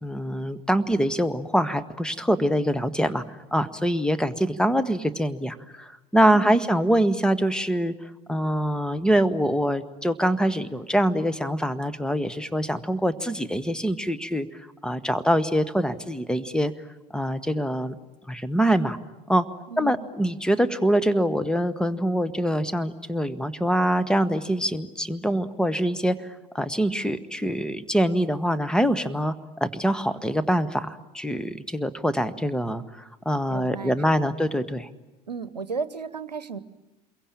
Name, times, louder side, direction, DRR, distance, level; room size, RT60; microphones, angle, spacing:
voice 1, 0.0-7.9 8.3-14.5 14.8-16.7 17.1-17.9 18.3-19.0 19.3-19.4 19.8-26.1 26.5-29.3 29.6-34.9, equal, 5° left, 13 dB, 1.4 m, -24 dB
voice 2, 6.3-6.7 19.7-20.1 33.5-34.4 35.3-36.6, right 5 dB, 90° right, 14 dB, 0.9 m, -34 dB
27.5 x 23.0 x 8.8 m, 1.0 s
figure-of-eight pair, 70°, 20 cm